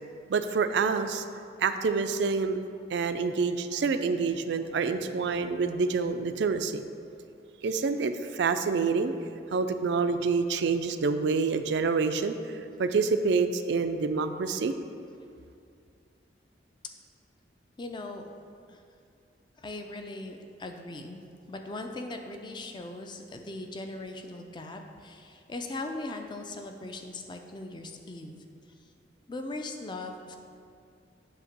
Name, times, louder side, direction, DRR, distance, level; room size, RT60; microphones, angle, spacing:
voice 1, 0.3-1.2 1.6-2.6 2.9-6.8 7.6-9.1 9.5-12.4 12.8-14.7, right 4 dB, 70° right, 9 dB, 0.3 m, -27 dB
voice 2, 17.8-18.2 18.7-18.8 19.6-21.2 21.5-28.4 29.3-30.4, left 2 dB, 25° left, 5 dB, 0.4 m, -39 dB
7.8 x 2.8 x 5.9 m, 2.4 s
head